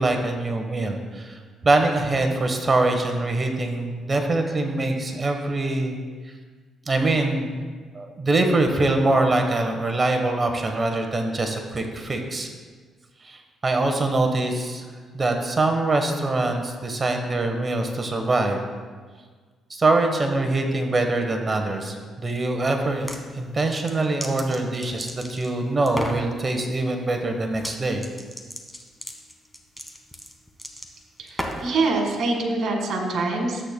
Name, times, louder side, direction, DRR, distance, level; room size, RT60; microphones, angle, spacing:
voice 1, 0.0-6.0 6.9-7.6 7.9-12.5 13.2-14.8 15.1-18.6 19.7-23.1 23.3-28.0, right 2 dB, 30° right, 4 dB, 1.1 m, -23 dB
sound 1, 22.8-23.2 23.7-25.5 25.9-26.2 27.5-27.8 28.0-31.8, equal, 5° left, 1.1 m, -34 dB
voice 2, 31.2-33.6, right 3 dB, 65° right, 2 dB, 1.8 m, -25 dB
13.0 x 8.2 x 2.2 m, 1.5 s
cardioid pair, 90°, 0 cm